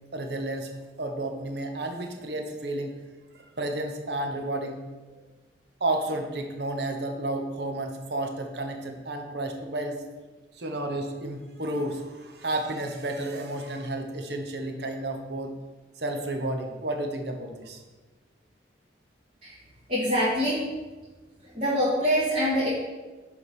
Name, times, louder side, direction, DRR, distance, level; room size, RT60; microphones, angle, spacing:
voice 1, 0.1-0.7 1.0-2.9 3.6-4.8 5.1-5.2 5.8-10.0 10.6-15.5 16.0-17.8, right 1 dB, 65° right, 4 dB, 1.0 m, -31 dB
voice 2, 19.9-20.6 21.5-22.7, equal, 45° right, -11 dB, 2.4 m, -24 dB
6.9 x 4.9 x 5.4 m, 1.2 s
head